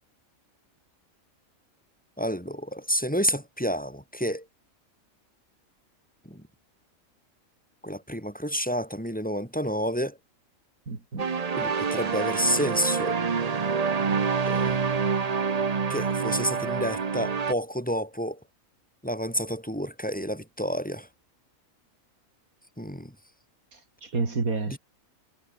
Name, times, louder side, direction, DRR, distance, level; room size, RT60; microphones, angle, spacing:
voice 1, 2.2-4.5 6.2-6.4 7.8-10.2 11.6-13.2 14.4-14.8 15.9-18.4 19.0-21.1 22.8-23.1 24.7-24.8, equal, 5° left, 6.3 m, -29 dB
voice 2, 10.9-11.2 23.7-24.8, right 3 dB, 85° right, 3.8 m, -30 dB
sound 1, 11.2-17.5, right 5 dB, 35° right, 0.8 m, -27 dB
omnidirectional pair, 1.5 m